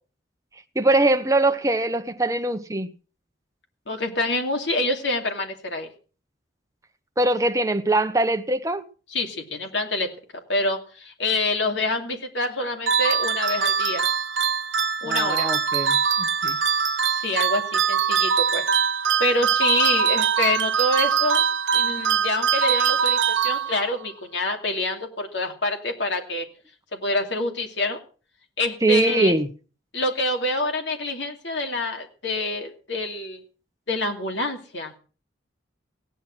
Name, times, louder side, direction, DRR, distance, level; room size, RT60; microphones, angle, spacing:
voice 1, 0.7-2.9 7.2-8.8 15.0-16.6 28.8-29.5, right 2 dB, 15° right, 0.9 m, -22 dB
voice 2, 3.9-5.9 9.1-10.1 10.5-14.0 15.0-15.5 17.1-18.6 19.2-21.4 21.7-26.5 26.9-28.0 28.6-29.4 29.9-33.4 33.9-34.9, left 2 dB, 75° left, 2.7 m, -26 dB
sound 1, 12.9-24.1, right 7 dB, 80° right, 0.8 m, -22 dB
16.5 x 10.0 x 6.0 m
head